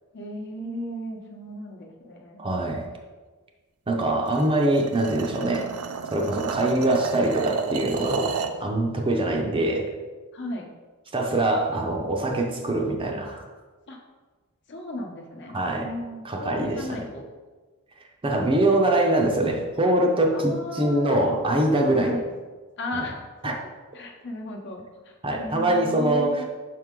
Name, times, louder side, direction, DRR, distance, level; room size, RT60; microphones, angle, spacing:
voice 1, 0.1-2.4 10.3-10.7 13.9-14.0 14.7-17.2 20.3-21.3 21.9-22.3 22.8-23.5 23.9-26.4, left 1 dB, 55° left, 1 dB, 0.9 m, -35 dB
voice 2, 2.4-2.8 3.9-5.7 6.1-9.9 11.1-13.4 15.5-15.9 16.2-17.0 18.2-22.1 22.9-23.0 23.4-23.5 25.2-26.4, right 1 dB, 25° right, 1 dB, 0.6 m, -23 dB
sound 1, 4.2-8.6, right 6 dB, 75° right, 0.5 m, -32 dB
6.3 x 4.6 x 3.7 m, 1.3 s
head